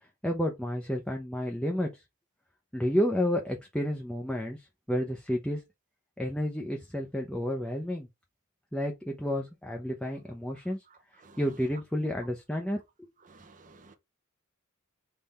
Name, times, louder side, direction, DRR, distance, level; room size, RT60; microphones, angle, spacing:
voice 1, 0.2-2.0 2.7-5.6 6.2-8.1 8.7-10.8 11.4-13.1, equal, 5° left, 0.6 m, -31 dB
voice 2, 13.3-14.0, right 3 dB, 35° right, 0.7 m, -55 dB
3.6 x 3.3 x 4.0 m
head